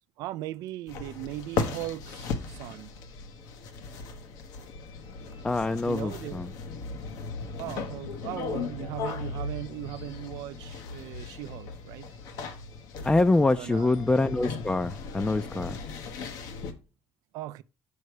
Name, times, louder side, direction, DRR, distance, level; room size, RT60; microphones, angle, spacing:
voice 1, 0.2-2.9 5.9-6.4 7.6-12.1 13.5-13.9 17.3-17.6, right 15 dB, 80° right, 0.4 m, -38 dB
sound 1, 0.9-16.7, left 4 dB, 80° left, 1.2 m, -37 dB
voice 2, 5.4-6.5 13.0-15.8, left 2 dB, 15° left, 0.5 m, -25 dB
6.6 x 5.5 x 4.8 m
supercardioid pair, 80°, 6 cm